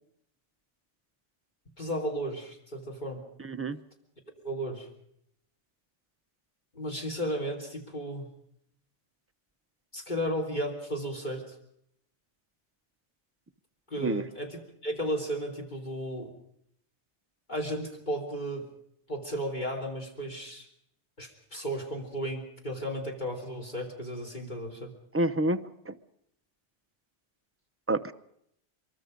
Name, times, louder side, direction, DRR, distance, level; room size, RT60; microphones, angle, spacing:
voice 1, 1.8-3.2 4.4-4.9 6.7-8.3 9.9-11.6 13.9-16.3 17.5-18.7 19.1-20.7 21.2-24.9, equal, 40° left, -1 dB, 3.6 m, -34 dB
voice 2, 3.4-3.8 14.0-14.2 25.1-25.9 27.9-28.1, right 1 dB, 15° right, 9 dB, 0.7 m, -28 dB
24.0 x 23.0 x 5.2 m, 0.72 s
omnidirectional pair, 1.2 m